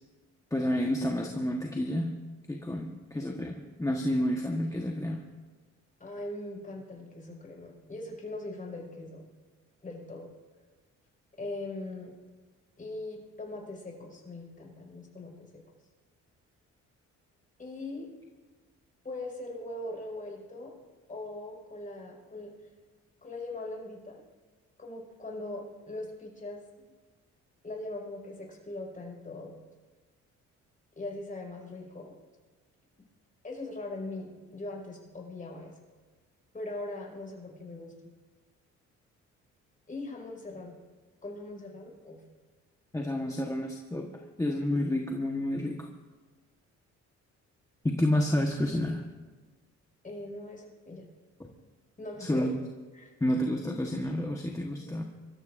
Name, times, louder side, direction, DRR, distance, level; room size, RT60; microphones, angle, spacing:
voice 1, 0.5-2.2 2.5-5.2 42.9-44.1 44.4-45.9 47.8-49.0 51.4-51.5 52.2-52.6 53.2-55.0, left 1 dB, 10° left, 1 dB, 1.2 m, -30 dB
voice 2, 6.0-9.3 9.8-10.3 11.4-12.1 12.8-15.6 17.6-18.1 19.0-20.8 21.1-22.5 23.2-24.2 24.8-26.9 27.6-29.6 31.0-32.2 33.4-35.8 36.5-38.0 39.9-40.8 41.2-42.2 50.0-51.0 52.0-52.5 52.9-53.1, left 2 dB, 25° left, -1 dB, 5.5 m, -40 dB
24.5 x 14.0 x 2.6 m, 1.3 s
cardioid pair, 90°, 30 cm